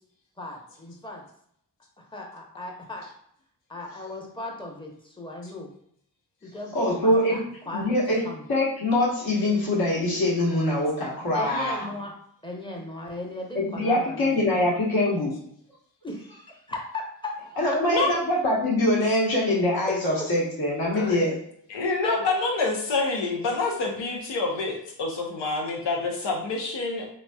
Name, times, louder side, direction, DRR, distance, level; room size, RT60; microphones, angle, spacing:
voice 1, 0.4-1.2 2.0-3.1 3.7-5.7 6.4-7.4 7.7-8.0 8.2-8.4 11.3-12.1 12.4-14.6 16.0-17.5, left 2 dB, 10° left, 0 dB, 0.8 m, -37 dB
voice 2, 6.7-7.4 7.7-8.2 8.5-11.8 13.5-15.3 17.6-21.4, left 1 dB, 60° left, -5 dB, 1.2 m, -23 dB
voice 3, 17.8-18.2 20.9-21.2 21.7-27.1, left 3 dB, 85° left, 0 dB, 0.8 m, -27 dB
3.0 x 2.7 x 2.2 m, 0.68 s
cardioid pair, 50°, 41 cm